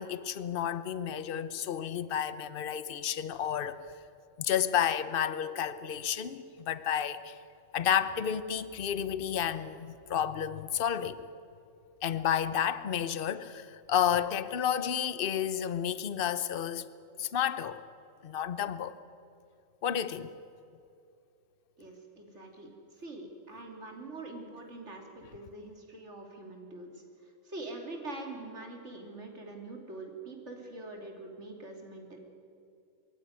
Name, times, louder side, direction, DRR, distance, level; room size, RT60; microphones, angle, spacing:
voice 1, 0.0-3.8 4.4-7.4 7.7-11.2 12.0-16.9 17.2-17.8 18.2-18.9 19.8-20.3, left 9 dB, 50° left, 14 dB, 0.9 m, -31 dB
voice 2, 21.8-32.2, right 2 dB, 65° right, 1 dB, 3.3 m, -44 dB
23.5 x 14.5 x 9.6 m, 2.7 s
omnidirectional pair, 1.3 m